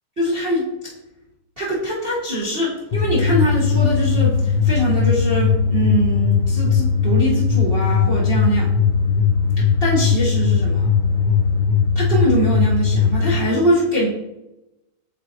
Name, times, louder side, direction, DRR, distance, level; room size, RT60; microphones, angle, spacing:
voice 1, 0.2-0.7 1.6-8.7 9.6-10.9 11.9-14.1, right 1 dB, 60° right, -8 dB, 0.5 m, -22 dB
sound 1, 2.9-13.4, left 6 dB, 80° left, 1.8 m, -18 dB
8.5 x 4.2 x 3.0 m, 0.93 s
omnidirectional pair, 3.7 m